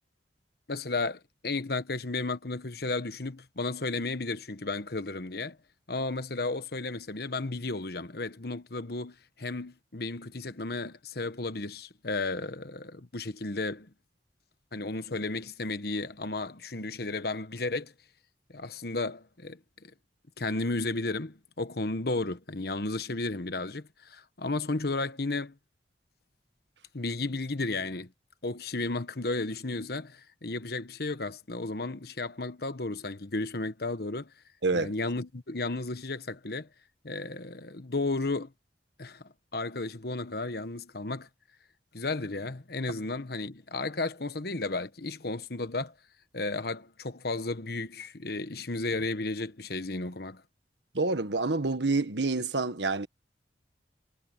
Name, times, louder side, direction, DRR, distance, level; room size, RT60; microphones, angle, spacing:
voice 1, 0.7-5.6 5.9-13.9 14.7-17.9 18.5-19.6 20.4-25.5 26.9-28.1 28.4-34.3 34.7-36.7 37.0-38.5 39.0-39.2 39.5-41.3 41.9-45.9 46.3-50.4, left 3 dB, 60° left, 1.3 m, -33 dB
voice 2, 34.6-34.9 50.9-53.1, right 3 dB, 85° right, 1.6 m, -27 dB
head